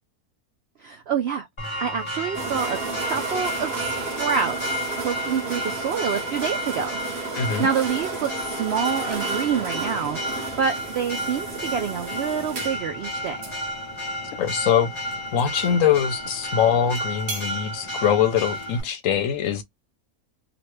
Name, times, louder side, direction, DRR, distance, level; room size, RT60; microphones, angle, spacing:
voice 1, 0.8-1.5 1.8-7.0 7.6-10.2 10.6-13.4, right 7 dB, 75° right, 0.6 m, -27 dB
Church bell, 1.6-18.8, equal, 20° left, 1.0 m, -32 dB
sound 1, 2.3-18.9, right 3 dB, 45° right, 0.9 m, -34 dB
voice 2, 7.3-7.7 14.3-14.9 15.3-19.6, left 8 dB, 70° left, 0.9 m, -22 dB
3.0 x 2.4 x 3.0 m
omnidirectional pair, 1.6 m